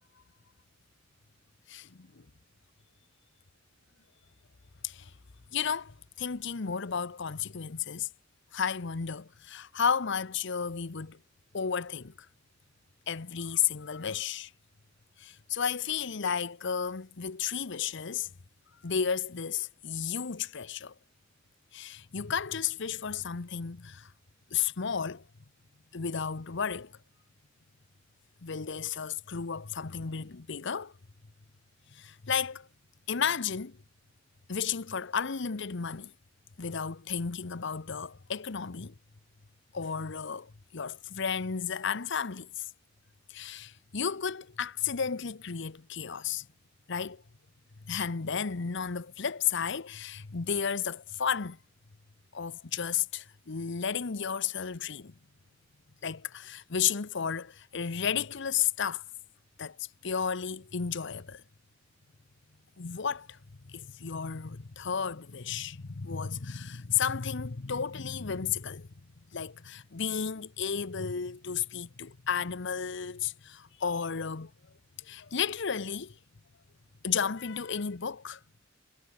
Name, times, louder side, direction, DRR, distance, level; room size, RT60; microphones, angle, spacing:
voice 1, 1.7-2.2 4.8-5.1 5.5-8.1 8.5-11.2 11.5-12.1 13.1-14.5 15.2-18.3 18.8-20.9 21.7-24.1 24.5-25.2 25.9-26.9 28.4-30.9 31.9-32.7 33.1-33.8 34.5-36.1 36.6-38.9 39.7-42.7 43.3-46.5 46.9-47.2 47.8-51.6 52.3-55.2 56.0-59.0 59.6-61.4 62.8-68.9 69.3-74.5 75.0-76.2 77.0-78.4, left 7 dB, 65° left, 0.9 m, -33 dB
head